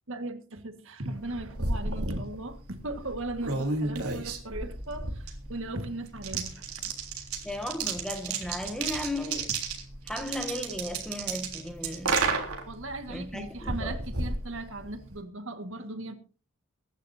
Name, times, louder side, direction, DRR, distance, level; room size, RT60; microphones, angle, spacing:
voice 1, 0.1-6.9 12.7-16.1, right 2 dB, 60° right, 1.8 m, -38 dB
sound 1, 1.1-15.2, right 3 dB, 85° right, 3.5 m, -33 dB
voice 2, 7.4-9.5 10.0-12.3 13.1-13.9, left 1 dB, 5° left, 1.8 m, -35 dB
23.5 x 11.5 x 2.8 m
head